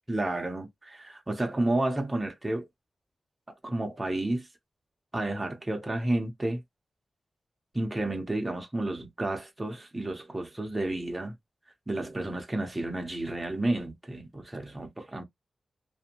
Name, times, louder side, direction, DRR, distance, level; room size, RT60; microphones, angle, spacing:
voice 1, 0.1-2.7 3.6-4.5 5.1-6.6 7.7-11.3 11.9-15.2, right 1 dB, 15° right, 0.6 m, -31 dB
2.5 x 2.1 x 2.8 m
wide cardioid pair, 150°, 0 cm